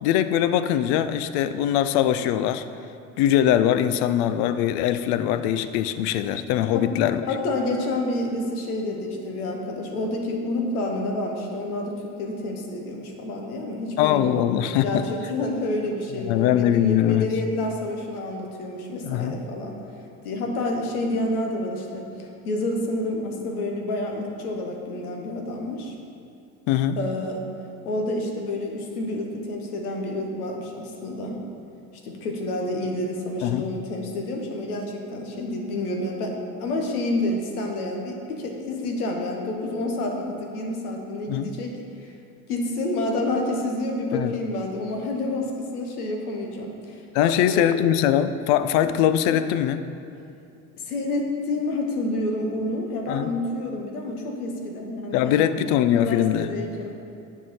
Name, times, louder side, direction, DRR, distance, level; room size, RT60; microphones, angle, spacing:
voice 1, 0.0-2.6 3.2-7.2 14.0-15.0 16.3-17.3 19.0-19.4 26.7-27.0 33.4-33.6 41.3-41.5 44.1-44.3 47.1-49.9 53.1-53.3 55.1-56.5, left 11 dB, 60° left, 12 dB, 0.6 m, -22 dB
voice 2, 7.3-19.8 20.2-25.9 27.0-27.4 27.8-31.4 32.0-42.1 42.5-47.7 48.8-49.0 50.8-55.4 55.9-56.9, left 2 dB, 80° left, 1 dB, 1.2 m, -29 dB
9.7 x 4.7 x 5.5 m, 2.6 s
hypercardioid pair, 65°, 44 cm